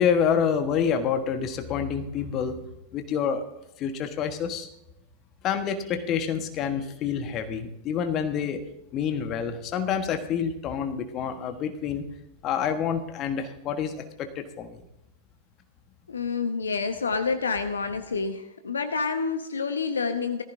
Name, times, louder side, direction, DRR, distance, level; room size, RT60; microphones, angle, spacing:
voice 1, 0.0-2.6 2.9-3.4 3.8-4.7 5.4-8.6 8.9-12.1 12.4-14.8, left 7 dB, 35° left, 7 dB, 1.4 m, -27 dB
voice 2, 16.1-20.4, left 5 dB, 70° left, 9 dB, 0.9 m, -28 dB
18.0 x 14.5 x 2.8 m, 0.86 s
figure-of-eight pair, 90°, 0 cm